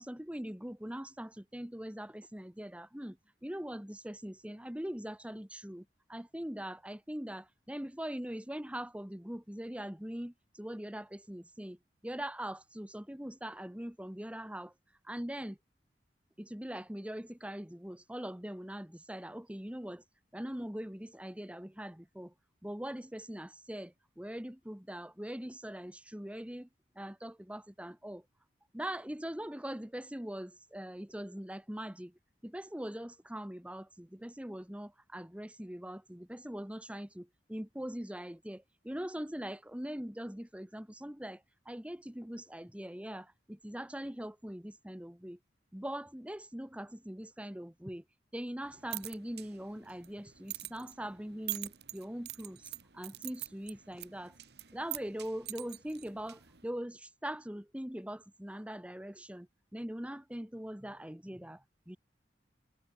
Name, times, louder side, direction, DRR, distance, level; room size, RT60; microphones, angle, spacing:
voice 1, 0.0-11.8 12.0-14.7 15.0-15.6 16.4-20.0 20.3-22.3 22.6-26.7 26.9-28.2 28.7-45.4 45.7-48.0 48.3-54.4 54.7-62.0, equal, 5° right, 1.2 m, -42 dB
sound 1, 48.6-56.7, right 15 dB, 65° right, 2.0 m, -45 dB
head